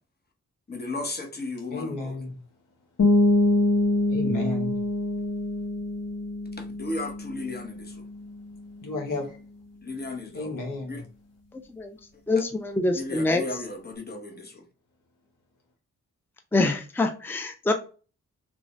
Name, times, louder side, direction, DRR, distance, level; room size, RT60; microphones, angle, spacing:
voice 1, 0.7-2.2 6.6-8.1 9.8-11.0 12.9-14.7, left 2 dB, 30° left, 1.1 m, -35 dB
voice 2, 1.7-2.4 4.1-4.8 8.8-9.4 10.3-11.0, left 2 dB, 80° left, 1.2 m, -32 dB
sound 1, 3.0-8.6, left 2 dB, 50° left, 1.5 m, -25 dB
voice 3, 11.5-12.0 12.3-13.4 16.5-17.7, left 2 dB, 5° left, 0.5 m, -25 dB
3.5 x 2.5 x 3.1 m
cardioid pair, 50°, 32 cm